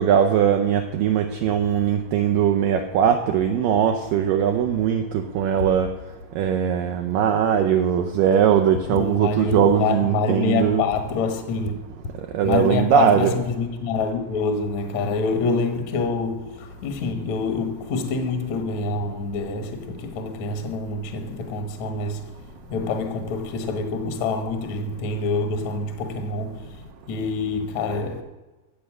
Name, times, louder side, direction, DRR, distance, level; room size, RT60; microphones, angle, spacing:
voice 1, 0.0-5.9 6.4-10.8 12.2-13.4, right 8 dB, 80° right, 2.0 m, -20 dB
voice 2, 8.8-11.9 12.4-22.4 22.7-28.2, left 4 dB, 65° left, 1.9 m, -26 dB
14.0 x 7.7 x 6.2 m
omnidirectional pair, 4.7 m